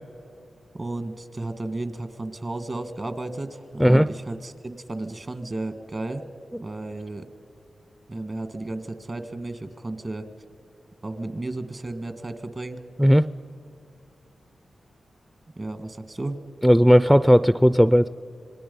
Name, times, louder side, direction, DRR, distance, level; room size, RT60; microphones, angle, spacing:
voice 1, 0.7-6.2 6.6-7.3 8.1-10.3 11.0-12.8 15.6-16.4, right 2 dB, 40° right, 10 dB, 1.7 m, -33 dB
voice 2, 16.6-18.1, equal, 5° right, 14 dB, 0.4 m, -16 dB
26.0 x 20.5 x 5.4 m, 2.7 s
cardioid pair, 55°, 0 cm